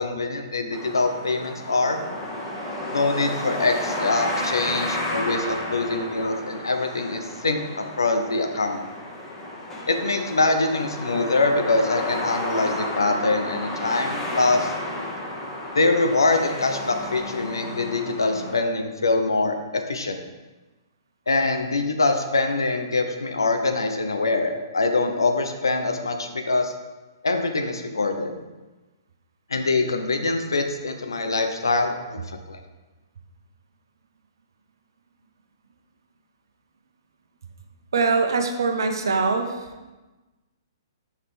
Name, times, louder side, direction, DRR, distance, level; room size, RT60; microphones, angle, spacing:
voice 1, 0.0-2.0 2.9-8.8 9.9-14.7 15.7-20.2 21.3-26.7 27.2-28.4 29.5-32.2 32.5-32.6, left 3 dB, 75° left, 6 dB, 0.7 m, -24 dB
sound 1, 0.7-18.6, left 1 dB, 15° left, 1.3 m, -32 dB
voice 2, 37.9-39.9, right 4 dB, 65° right, 6 dB, 0.7 m, -23 dB
5.8 x 5.5 x 3.3 m, 1.2 s
figure-of-eight pair, 120°, 2 cm